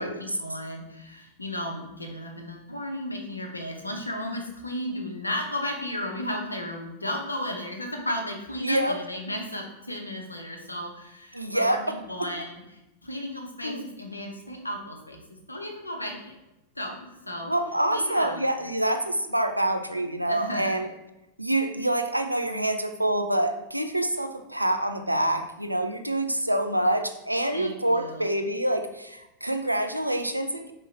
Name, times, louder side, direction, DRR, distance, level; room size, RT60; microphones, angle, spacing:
voice 1, 0.0-12.6 13.0-15.2 15.5-16.4 16.8-17.5 17.9-18.4 20.3-20.8 27.5-28.2, left 1 dB, 85° left, 2 dB, 0.7 m, -34 dB
voice 2, 8.6-8.9 11.3-11.8 12.2-12.3 13.6-13.9 17.4-20.9 21.4-30.7, right 1 dB, 85° right, 6 dB, 0.4 m, -26 dB
4.6 x 3.0 x 3.3 m, 0.94 s
figure-of-eight pair, 90°, 0 cm